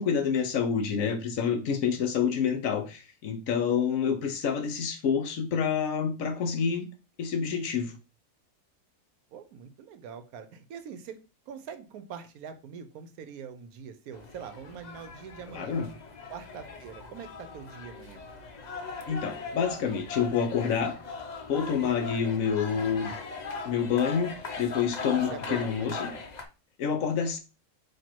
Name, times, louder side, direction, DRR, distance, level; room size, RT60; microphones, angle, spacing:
voice 1, 0.0-6.9 7.2-7.9 15.5-15.9 19.1-20.9 21.5-23.1 23.6-24.3 24.6-26.1 26.8-27.4, left 7 dB, 65° left, 1.1 m, -28 dB
voice 2, 9.3-15.8 16.3-18.3 25.1-26.3, right 7 dB, 75° right, 1.1 m, -44 dB
sound 1, 14.1-26.4, left 4 dB, 85° left, 0.3 m, -40 dB
4.4 x 2.7 x 4.4 m
omnidirectional pair, 1.6 m